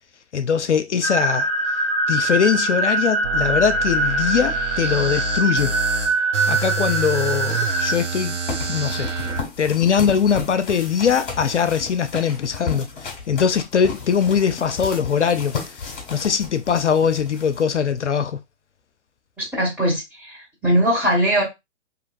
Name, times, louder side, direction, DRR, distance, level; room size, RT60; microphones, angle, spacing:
voice 1, 0.3-1.5 2.1-6.1 6.5-8.4 8.7-9.1 9.6-18.4, left 7 dB, 75° left, 0.5 m, -21 dB
sound 1, 1.0-7.9, right 2 dB, 20° right, 1.2 m, -23 dB
sound 2, 3.2-9.4, right 3 dB, 85° right, 0.9 m, -27 dB
sound 3, 8.5-18.0, left 5 dB, 40° left, 1.7 m, -33 dB
voice 2, 19.4-21.4, equal, 5° right, 1.9 m, -21 dB
5.0 x 2.8 x 2.6 m
figure-of-eight pair, 115°, 35 cm